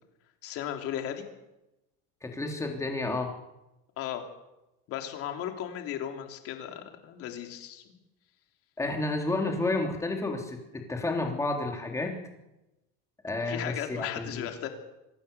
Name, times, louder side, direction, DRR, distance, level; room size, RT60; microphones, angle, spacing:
voice 1, 0.4-1.2 4.0-4.2 4.9-7.8 13.4-14.7, left 10 dB, 50° left, 4 dB, 3.3 m, -36 dB
voice 2, 2.2-3.3 8.8-12.2 13.2-14.5, left 2 dB, 10° left, 2 dB, 3.5 m, -31 dB
25.0 x 17.5 x 7.1 m, 0.96 s
cardioid pair, 145°, 29 cm